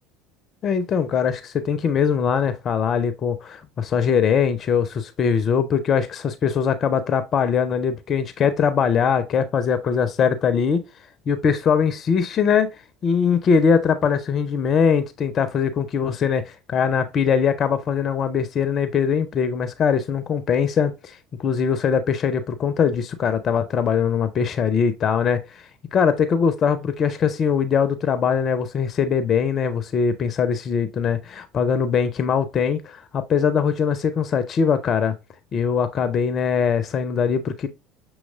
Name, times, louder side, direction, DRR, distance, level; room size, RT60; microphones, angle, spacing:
voice 1, 0.6-10.8 11.3-35.1 35.5-37.7, left 6 dB, 40° left, 0.4 m, -21 dB
6.3 x 3.0 x 2.3 m
figure-of-eight pair, 65°, 0 cm